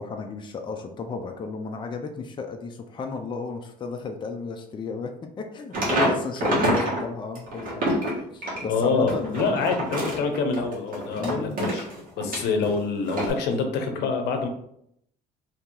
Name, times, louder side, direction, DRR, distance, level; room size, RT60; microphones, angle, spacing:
voice 1, 0.0-9.7 11.2-11.6, left 4 dB, 30° left, 4 dB, 0.4 m, -34 dB
sound 1, 5.7-7.0 7.3-12.7 13.1-13.3, right 1 dB, 55° right, 1.3 m, -27 dB
voice 2, 8.7-11.8 12.2-14.5, left 4 dB, 80° left, 5 dB, 0.7 m, -26 dB
2.8 x 2.8 x 3.7 m, 0.73 s
cardioid pair, 110°, 17 cm